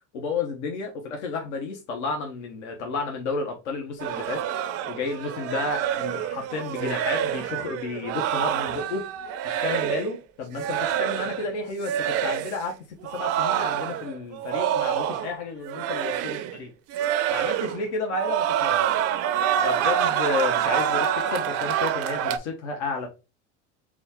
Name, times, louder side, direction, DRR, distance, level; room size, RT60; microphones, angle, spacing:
voice 1, 0.1-9.0 9.4-12.8 13.1-16.7 17.3-18.9 19.6-23.1, left 4 dB, 85° left, 1.0 m, -32 dB
sound 1, 4.0-10.2 10.5-11.5 11.8-12.6 13.0-15.4 15.6-16.6 16.9-17.9 18.1-22.4, right 10 dB, 45° right, 0.5 m, -26 dB
4.2 x 2.3 x 4.2 m
supercardioid pair, 105°, 34 cm